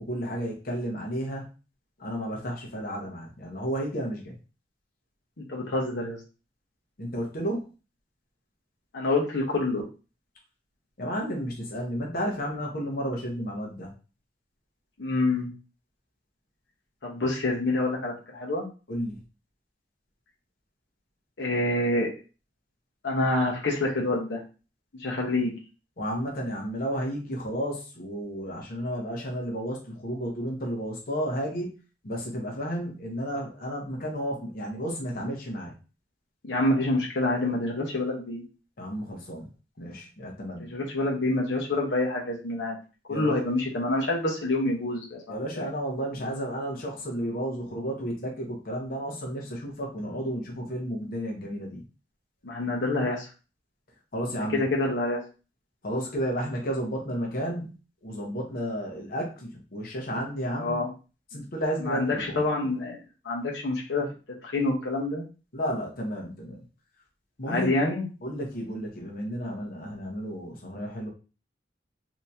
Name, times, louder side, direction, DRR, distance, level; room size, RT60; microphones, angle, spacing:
voice 1, 0.1-1.4 2.0-4.4 7.0-7.7 11.0-13.9 18.9-19.2 26.0-31.8 32.0-35.7 38.8-39.5 39.8-40.7 43.1-43.3 45.3-51.8 54.1-54.6 55.8-57.7 58.0-60.8 61.3-62.5 65.5-66.6 67.4-67.7 68.2-71.1, equal, 55° left, -1 dB, 1.0 m, -32 dB
voice 2, 5.4-6.2 8.9-9.8 15.0-15.5 17.0-18.7 21.4-22.1 23.0-24.4 25.0-25.5 36.4-38.4 40.7-42.8 43.1-45.7 52.4-53.3 54.5-55.2 60.6-60.9 61.8-64.1 64.4-65.2 67.5-68.1, left 2 dB, 85° left, -2 dB, 0.9 m, -27 dB
3.5 x 2.9 x 2.7 m, 0.33 s
head